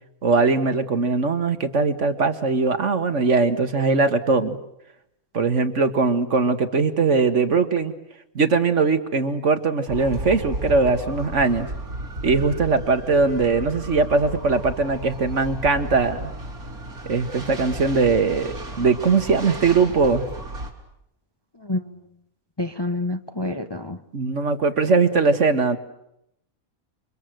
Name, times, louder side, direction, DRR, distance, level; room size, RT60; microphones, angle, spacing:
voice 1, 0.2-4.6 5.3-7.9 8.4-11.7 12.2-16.3 17.1-20.2 24.1-25.8, right 4 dB, 55° right, 9 dB, 1.9 m, -20 dB
sound 1, 9.9-20.7, right 1 dB, 85° right, 4.0 m, -34 dB
voice 2, 21.6-21.9 22.6-24.0, left 2 dB, 20° left, 8 dB, 0.9 m, -28 dB
28.5 x 25.5 x 7.9 m, 0.81 s
omnidirectional pair, 1.5 m